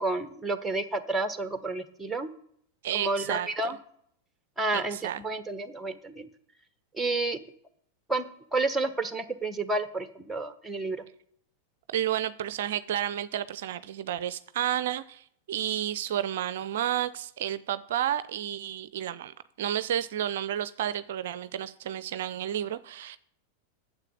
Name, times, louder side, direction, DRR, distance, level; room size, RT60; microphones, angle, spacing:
voice 1, 0.0-2.3 2.9-3.8 4.6-6.3 6.9-7.4 8.1-8.2 8.5-11.0, right 2 dB, 5° right, 10 dB, 1.2 m, -30 dB
voice 2, 2.8-3.5 4.7-5.2 11.9-23.2, right 11 dB, 55° right, 15 dB, 0.5 m, -31 dB
9.7 x 7.4 x 7.8 m, 0.69 s
figure-of-eight pair, 90°, 0 cm